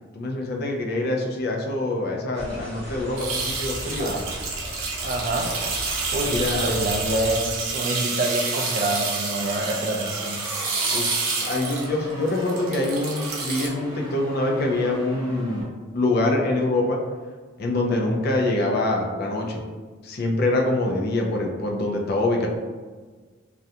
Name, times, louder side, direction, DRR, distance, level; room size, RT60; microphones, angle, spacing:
voice 1, 0.1-4.1 6.3-6.8 10.9-15.7 15.9-17.0 17.6-19.6 20.0-22.5, left 2 dB, 50° left, 0 dB, 0.4 m, -25 dB
sound 1, 2.3-7.7, equal, 5° left, 0.7 m, -37 dB
sound 2, 3.2-13.7, right 4 dB, 80° right, 0.6 m, -29 dB
voice 2, 4.0-4.3 5.0-5.5 6.1-10.4, right 1 dB, 40° right, 1 dB, 0.3 m, -26 dB
sound 3, 5.0-15.6, right 1 dB, 25° right, 1.0 m, -39 dB
2.4 x 2.2 x 2.7 m, 1.4 s
head